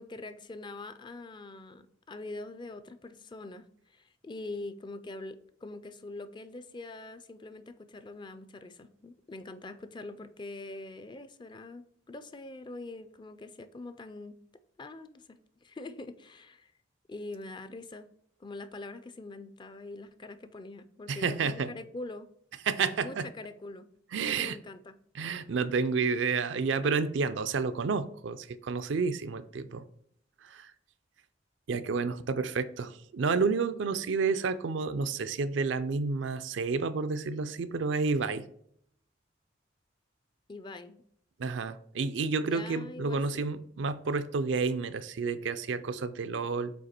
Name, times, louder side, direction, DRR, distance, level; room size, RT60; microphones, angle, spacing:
voice 1, 0.0-14.4 14.8-16.7 17.1-18.1 18.4-22.3 23.0-23.9 24.3-25.0 40.5-41.0 42.4-43.5, left 2 dB, 25° left, 12 dB, 0.4 m, -44 dB
voice 2, 21.1-21.7 22.7-23.3 24.1-24.6 25.1-29.8 30.4-30.7 31.7-38.4 41.4-46.7, right 4 dB, 70° right, 12 dB, 0.4 m, -30 dB
7.8 x 2.9 x 4.4 m, 0.67 s
head